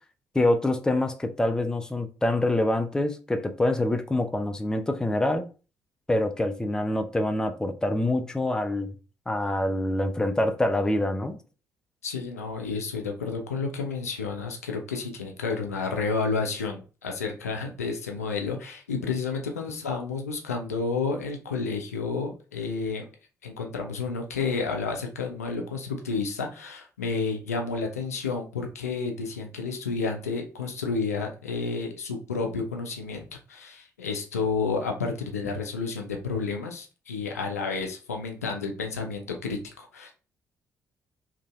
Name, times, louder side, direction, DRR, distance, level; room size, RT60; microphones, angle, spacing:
voice 1, 0.3-5.4 6.1-8.9 9.3-11.4, left 1 dB, 10° left, 0.4 m, -25 dB
voice 2, 12.0-23.0 23.4-40.1, left 4 dB, 85° left, 0.3 m, -31 dB
2.9 x 2.5 x 2.4 m
figure-of-eight pair, 45°, 8 cm